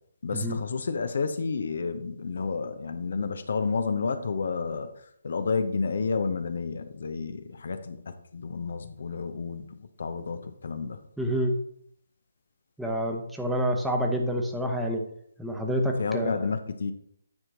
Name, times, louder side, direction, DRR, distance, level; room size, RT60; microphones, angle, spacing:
voice 1, 0.2-4.9 5.2-11.0 16.0-16.9, left 4 dB, 60° left, 9 dB, 0.7 m, -30 dB
voice 2, 11.2-11.6 12.8-15.1 15.4-16.4, equal, 5° right, 1 dB, 0.9 m, -28 dB
9.8 x 4.4 x 3.9 m, 0.69 s
figure-of-eight pair, 150°, 0 cm